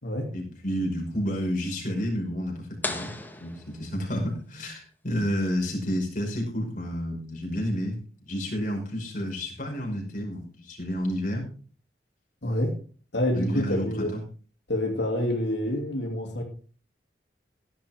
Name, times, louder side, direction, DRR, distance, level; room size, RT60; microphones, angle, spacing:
voice 1, 0.3-3.1 3.4-8.0 8.2-11.5 13.3-14.2, equal, 50° left, 0 dB, 5.5 m, -30 dB
sound 1, 2.8-4.5, left 2 dB, 10° left, 1.6 m, -36 dB
voice 2, 12.4-12.7 13.1-14.1 14.7-16.4, left 1 dB, 85° left, 0 dB, 2.8 m, -27 dB
16.0 x 11.0 x 3.7 m, 0.40 s
head